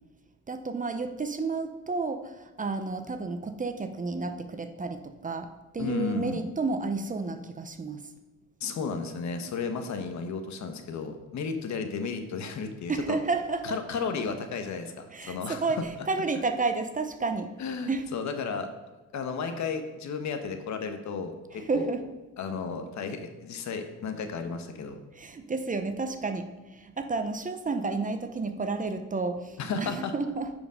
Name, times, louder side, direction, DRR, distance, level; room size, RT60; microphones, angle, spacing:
voice 1, 0.5-8.0 12.9-13.8 15.1-17.5 17.9-18.1 21.5-22.0 25.1-30.5, right 3 dB, 25° right, 8 dB, 0.8 m, -31 dB
voice 2, 5.8-6.4 8.6-13.2 13.6-15.8 17.6-18.7 19.1-21.9 22.4-25.0 29.6-30.1, left 5 dB, 70° left, 7 dB, 1.2 m, -33 dB
9.4 x 5.2 x 5.0 m, 1.2 s
cardioid pair, 90°, 30 cm